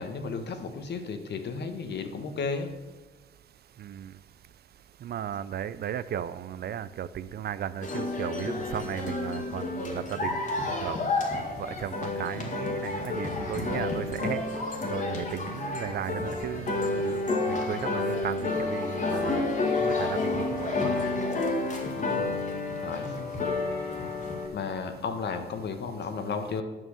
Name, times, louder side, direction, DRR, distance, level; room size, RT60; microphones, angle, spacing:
voice 1, 0.0-2.7 21.7-22.4 22.7-23.2 24.5-26.6, left 5 dB, 60° left, 7 dB, 1.3 m, -34 dB
voice 2, 3.8-4.1 5.0-10.4 10.8-11.0 11.6-14.4 14.8-19.4 19.8-20.9, right 9 dB, 55° right, 15 dB, 0.5 m, -35 dB
sound 1, 7.8-24.5, left 3 dB, 40° left, 2.0 m, -30 dB
9.0 x 6.2 x 6.4 m, 1.3 s
cardioid pair, 90°, 20 cm